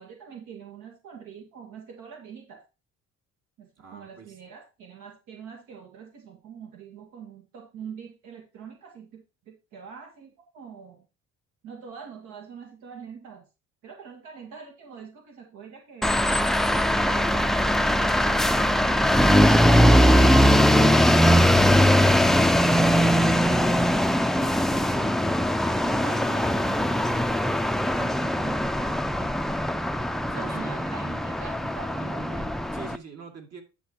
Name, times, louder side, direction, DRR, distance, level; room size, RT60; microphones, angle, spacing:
voice 1, 0.0-2.6 3.6-11.0 11.6-13.5 13.8-16.3 24.4-25.1 25.8-29.6 30.3-32.6, right 6 dB, 80° right, 1.8 m, -44 dB
voice 2, 3.8-4.4 25.8-26.4 30.2-30.8 32.7-33.6, right 6 dB, 55° right, 2.5 m, -44 dB
sound 1, 16.0-33.0, equal, ahead, 0.4 m, -21 dB
10.0 x 6.8 x 2.9 m
cardioid pair, 90°, 30 cm